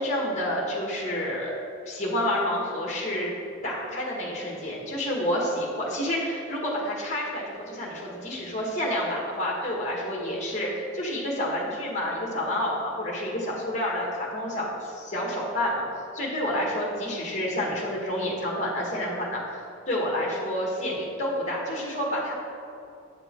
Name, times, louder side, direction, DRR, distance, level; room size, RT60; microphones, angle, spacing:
voice 1, 0.0-1.5 1.8-3.3 3.6-15.8 16.1-19.6 19.9-22.3, left 1 dB, 35° left, -2 dB, 1.5 m, -29 dB
8.4 x 5.3 x 4.4 m, 2.6 s
head